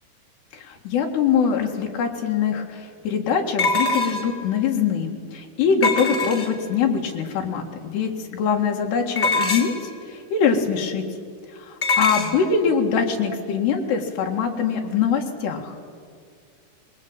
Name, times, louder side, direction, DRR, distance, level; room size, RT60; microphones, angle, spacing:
voice 1, 0.5-9.7 10.1-11.1 11.5-15.8, left 6 dB, 85° left, 1 dB, 4.0 m, -23 dB
sound 1, 2.0-2.1 3.6-4.4 5.8-6.7 9.2-9.9 11.8-12.3, left 3 dB, 25° left, 1.7 m, -23 dB
23.5 x 21.0 x 9.0 m, 2.2 s
omnidirectional pair, 4.7 m